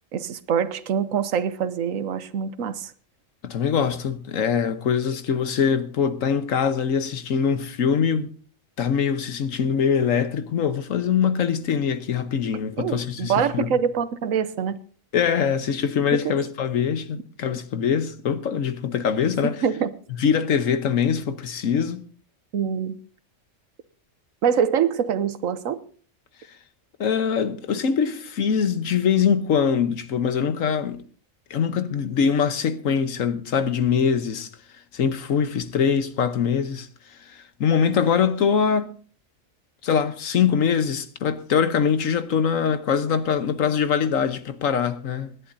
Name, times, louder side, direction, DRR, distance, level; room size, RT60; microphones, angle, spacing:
voice 1, 0.1-2.9 12.8-14.8 16.1-16.3 19.6-19.9 22.5-23.0 24.4-25.8, right 7 dB, 85° right, 1.2 m, -24 dB
voice 2, 3.4-8.3 8.8-13.7 15.1-19.6 20.1-22.0 27.0-31.0 31.5-34.5 34.9-36.9 37.2-38.9 39.8-45.3, left 7 dB, 80° left, 1.4 m, -23 dB
25.5 x 11.0 x 2.7 m
omnidirectional pair, 1.4 m